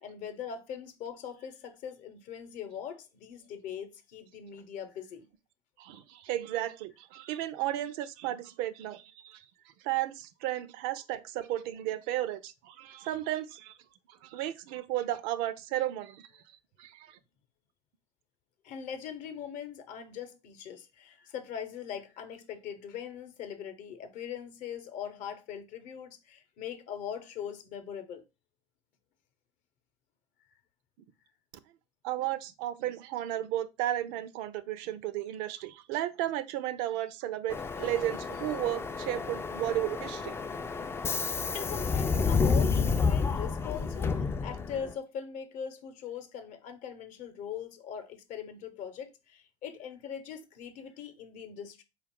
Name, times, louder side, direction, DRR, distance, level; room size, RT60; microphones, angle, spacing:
voice 1, 0.0-5.3 18.6-28.2 41.5-51.8, left 8 dB, 50° left, 0.8 m, -41 dB
voice 2, 5.8-9.4 9.8-13.7 14.2-16.3 16.8-17.2 32.0-40.4, right 13 dB, 60° right, 0.5 m, -34 dB
Subway metro underground, 37.5-44.9, left 5 dB, 15° left, 0.3 m, -30 dB
4.1 x 2.4 x 3.6 m
hypercardioid pair, 80°, 16 cm